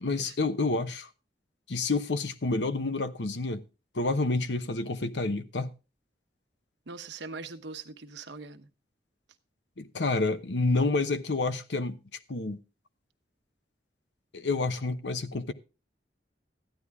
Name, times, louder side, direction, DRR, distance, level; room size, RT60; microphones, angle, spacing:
voice 1, 0.0-1.1 1.7-3.6 3.9-5.7 9.8-12.0 12.3-12.6 14.3-15.5, left 3 dB, 80° left, 1.0 m, -29 dB
voice 2, 6.9-8.7, right 4 dB, 80° right, 1.1 m, -42 dB
14.5 x 9.8 x 3.6 m
head